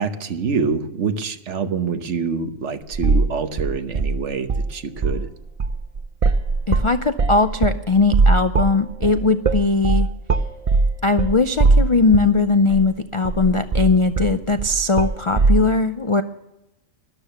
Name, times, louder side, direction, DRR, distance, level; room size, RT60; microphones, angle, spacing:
voice 1, 0.0-5.3, right 5 dB, 65° right, 9 dB, 1.3 m, -26 dB
sound 1, 2.9-3.3 3.6-4.7 5.0-5.3 5.6-12.4 12.7-12.8 13.2-15.6, right 3 dB, 45° right, 0.5 m, -19 dB
voice 2, 6.7-10.1 11.0-16.2, left 3 dB, 50° left, 10 dB, 0.3 m, -19 dB
13.0 x 12.0 x 6.8 m, 0.88 s
omnidirectional pair, 1.3 m